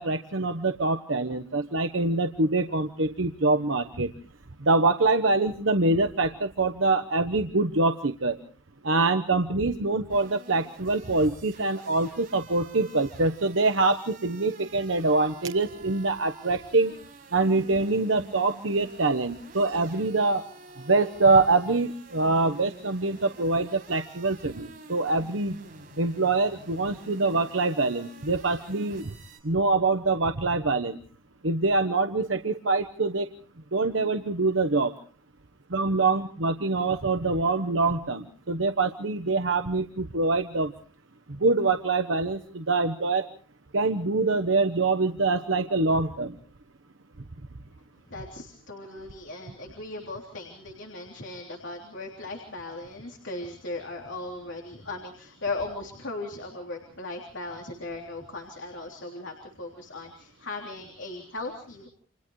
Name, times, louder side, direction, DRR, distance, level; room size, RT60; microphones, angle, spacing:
voice 1, 0.0-4.1 4.6-8.4 8.8-16.9 17.3-20.4 20.8-25.6 26.0-29.1 29.4-31.0 31.4-33.3 33.7-34.9 35.7-40.7 41.3-43.3 43.7-46.4, right 3 dB, 75° right, 7 dB, 1.1 m, -25 dB
sound 1, 10.1-29.4, right 3 dB, 45° right, 7.0 m, -49 dB
voice 2, 48.1-61.9, left 2 dB, 70° left, 1 dB, 3.4 m, -37 dB
29.5 x 27.5 x 3.2 m, 0.43 s
head